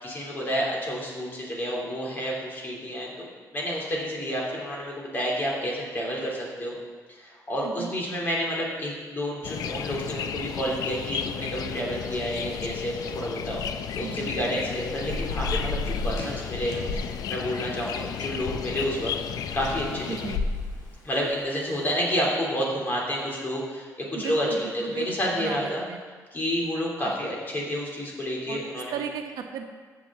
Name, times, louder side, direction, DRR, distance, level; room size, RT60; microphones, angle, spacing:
voice 1, 0.0-3.3 3.5-6.8 7.1-13.6 13.9-19.1 19.5-20.2 21.0-25.8 26.3-29.0, equal, 30° left, -3 dB, 2.7 m, -30 dB
sound 1, 9.4-20.4, left 8 dB, 70° left, 0.5 m, -34 dB
voice 2, 14.0-14.3 20.1-20.4 24.1-25.1 25.4-26.0 27.1-27.2 28.5-29.6, right 7 dB, 85° right, 4 dB, 1.0 m, -35 dB
Thunder / Rain, 14.3-22.0, left 3 dB, 90° left, 1.8 m, -34 dB
14.0 x 7.0 x 3.6 m, 1.5 s
cardioid pair, 135°, 7 cm